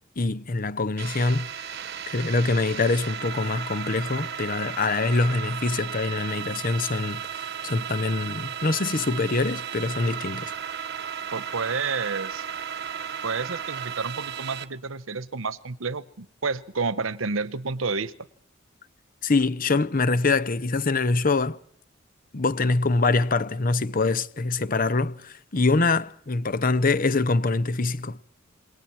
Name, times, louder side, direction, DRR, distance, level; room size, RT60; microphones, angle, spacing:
voice 1, 0.2-1.7 2.1-10.5 19.2-21.6 22.3-28.2, left 3 dB, 45° left, 0.8 m, -24 dB
sound 1, 1.0-14.7, right 8 dB, 55° right, 1.4 m, -35 dB
voice 2, 11.3-12.4 13.2-18.1, right 4 dB, 80° right, 1.0 m, -30 dB
27.5 x 21.5 x 4.5 m
head